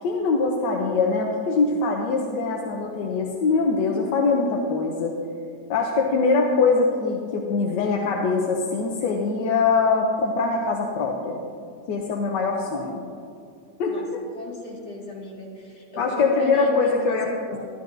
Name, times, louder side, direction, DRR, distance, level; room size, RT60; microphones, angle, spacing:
voice 1, 0.0-5.2 5.7-11.4 11.9-13.0 13.8-14.2 16.0-17.3, left 4 dB, 90° left, 1 dB, 1.4 m, -23 dB
voice 2, 14.3-17.2 17.5-17.6, left 2 dB, 65° left, -6 dB, 3.1 m, -36 dB
13.0 x 12.0 x 2.6 m, 2.4 s
omnidirectional pair, 1.8 m